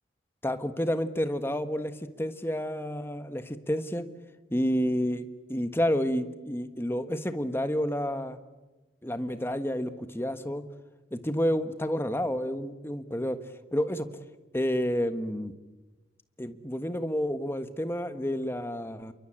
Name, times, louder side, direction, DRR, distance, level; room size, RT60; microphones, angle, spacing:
voice 1, 0.4-1.9 2.2-4.1 4.5-8.4 9.0-10.6 11.1-13.4 13.7-14.1 14.5-15.5 16.4-19.1, equal, 15° left, 9 dB, 1.5 m, -29 dB
28.5 x 23.5 x 9.0 m, 1.1 s
head